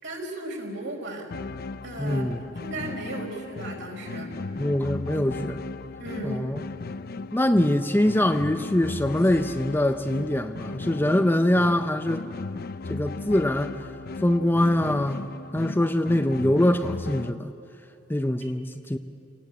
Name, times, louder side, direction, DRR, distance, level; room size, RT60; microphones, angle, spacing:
voice 1, 0.0-1.3 1.8-4.4 6.0-6.4, right 1 dB, 65° right, 0 dB, 4.9 m, -35 dB
sound 1, 1.3-17.3, left 3 dB, 50° left, 0.5 m, -36 dB
voice 2, 2.0-2.4 4.6-5.6 6.2-6.6 7.3-12.2 12.9-13.7 14.2-17.5 18.1-19.0, left 1 dB, 10° left, 7 dB, 0.6 m, -23 dB
29.0 x 19.0 x 8.5 m, 2.8 s
head